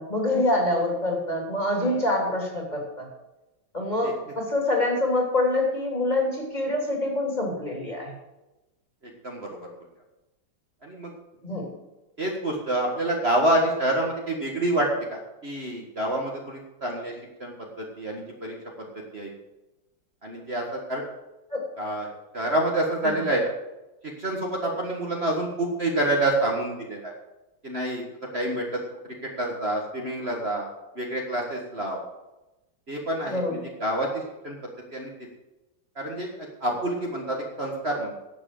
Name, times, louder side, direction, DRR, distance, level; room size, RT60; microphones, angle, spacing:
voice 1, 0.0-3.1 3.7-8.1 11.4-11.7 21.5-21.6 23.0-23.3 33.2-33.6, left 2 dB, 20° left, -1 dB, 3.2 m, -26 dB
voice 2, 12.2-17.1 17.4-18.5 19.1-19.3 20.2-21.0 21.8-22.1 22.3-23.5 24.2-27.1 27.6-28.0 28.3-28.8 29.4-30.7 31.0-32.0 32.9-34.1 34.4-34.6 34.9-35.1 35.9-36.3 36.6-38.1, right 1 dB, 35° right, -1 dB, 1.8 m, -27 dB
11.5 x 7.9 x 7.6 m, 1.0 s
omnidirectional pair, 2.0 m